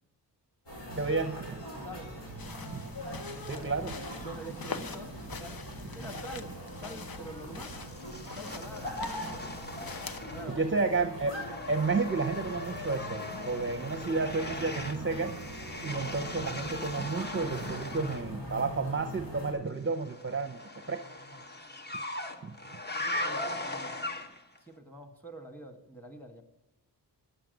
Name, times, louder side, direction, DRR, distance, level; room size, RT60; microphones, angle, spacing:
sound 1, 0.7-19.5, equal, 80° left, 5.1 m, -42 dB
voice 1, 1.0-1.6 2.7-2.8 3.5-4.0 10.5-11.4 11.7-15.3 15.8-20.6 20.9-21.0 22.4-22.5, right 4 dB, 30° right, 7 dB, 0.7 m, -31 dB
voice 2, 1.8-2.6 2.8-2.9 4.2-5.7 5.9-7.8 8.3-9.5 10.0-10.8 22.4-22.5 23.0-24.0 24.6-26.4, right 1 dB, 5° left, 4 dB, 1.8 m, -46 dB
sound 2, 2.4-10.2, left 5 dB, 55° left, 1.0 m, -44 dB
sound 3, 7.7-10.7 11.0-18.3 19.8-24.6, left 2 dB, 25° left, 1.0 m, -39 dB
10.0 x 7.5 x 9.1 m, 0.99 s
wide cardioid pair, 120°, 42 cm